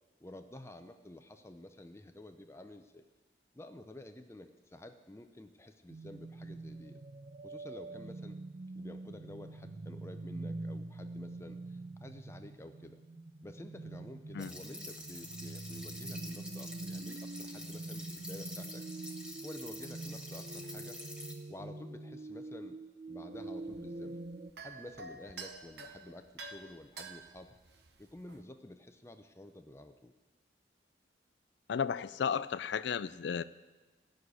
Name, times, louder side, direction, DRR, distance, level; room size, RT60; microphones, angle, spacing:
voice 1, 0.2-3.0 3.5-7.0 7.4-8.4 8.7-13.0 13.4-18.9 19.4-21.0 21.5-22.8 23.1-24.2 24.6-27.6 28.0-30.1, left 1 dB, 15° left, 7 dB, 0.5 m, -50 dB
sound 1, 5.9-24.5, right 2 dB, 40° right, 0.4 m, -45 dB
sound 2, 14.4-21.3, left 1 dB, 5° right, 1.4 m, -47 dB
sound 3, 23.3-28.4, right 3 dB, 65° right, 0.9 m, -49 dB
voice 2, 31.7-33.4, left 7 dB, 75° left, 14 dB, 0.4 m, -33 dB
15.0 x 6.4 x 9.4 m, 1.2 s
head